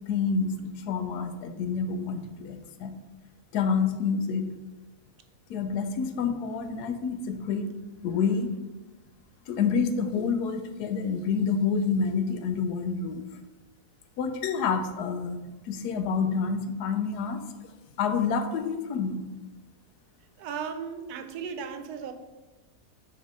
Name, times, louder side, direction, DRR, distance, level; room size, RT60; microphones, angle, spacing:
voice 1, 0.1-2.9 3.5-4.5 5.5-7.7 8.0-8.5 9.5-13.3 14.2-15.4 15.7-17.4 18.0-19.3, left 5 dB, 90° left, 8 dB, 1.2 m, -28 dB
voice 2, 20.4-22.1, right 6 dB, 80° right, 8 dB, 1.1 m, -36 dB
5.5 x 3.3 x 5.3 m, 1.1 s
omnidirectional pair, 1.6 m